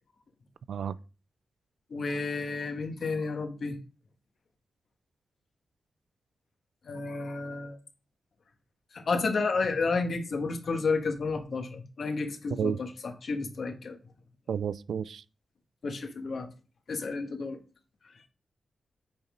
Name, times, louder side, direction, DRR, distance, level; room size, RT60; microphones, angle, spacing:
voice 1, 1.9-3.8 6.9-7.8 8.9-14.0 15.8-16.5 16.9-17.6, left 4 dB, 60° left, 1.6 m, -31 dB
voice 2, 14.5-15.2, right 7 dB, 90° right, 0.4 m, -31 dB
8.8 x 4.2 x 5.1 m
wide cardioid pair, 105°, 0 cm